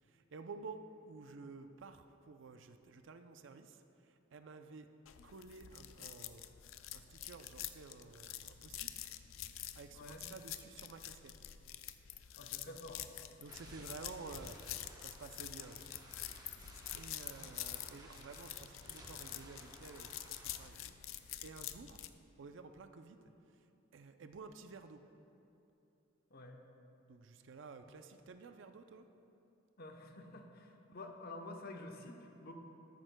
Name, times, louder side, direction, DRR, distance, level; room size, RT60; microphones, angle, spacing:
voice 1, 0.3-3.8 4.3-4.9 5.2-6.5 6.9-8.9 9.7-11.3 13.4-14.6 15.0-16.1 16.9-20.9 21.2-22.0 22.4-23.2 23.9-25.0 27.1-29.1, right 4 dB, 65° right, 8 dB, 0.5 m, -52 dB
sound 1, 5.1-22.1, left 12 dB, 85° left, 0.4 m, -47 dB
voice 2, 9.9-10.3 12.4-13.0 26.3-26.6 29.8-32.5, left 2 dB, 50° left, 3 dB, 0.8 m, -49 dB
sound 2, 13.5-20.7, right 1 dB, 20° right, 0.9 m, -57 dB
13.5 x 10.5 x 2.2 m, 2.8 s
head